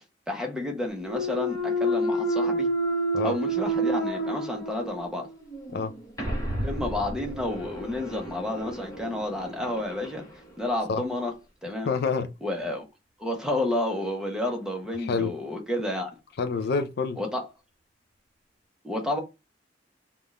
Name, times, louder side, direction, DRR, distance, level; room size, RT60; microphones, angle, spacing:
voice 1, 0.0-2.7 3.2-5.3 6.6-10.2 10.6-11.3 11.6-11.9 12.4-12.8 13.2-16.1 17.2-17.4 18.8-19.2, left 1 dB, 5° right, 0.9 m, -30 dB
Thump thud, 1.0-5.0 5.5-10.2, right 1 dB, 20° left, 1.1 m, -30 dB
sound 1, 6.2-10.0 10.3-10.4 10.6-10.7, right 1 dB, 40° right, 1.4 m, -37 dB
voice 2, 11.8-12.3 15.0-15.3 16.4-17.2, left 4 dB, 60° left, 0.4 m, -27 dB
3.5 x 2.4 x 4.1 m
head